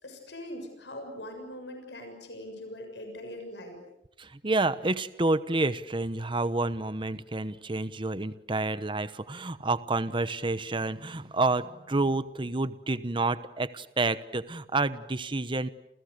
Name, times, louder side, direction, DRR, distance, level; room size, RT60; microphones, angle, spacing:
voice 1, 0.0-3.8, left 1 dB, 70° left, 5 dB, 7.0 m, -41 dB
voice 2, 4.2-15.7, right 2 dB, 30° right, 14 dB, 1.0 m, -29 dB
30.0 x 29.5 x 6.7 m, 0.82 s
head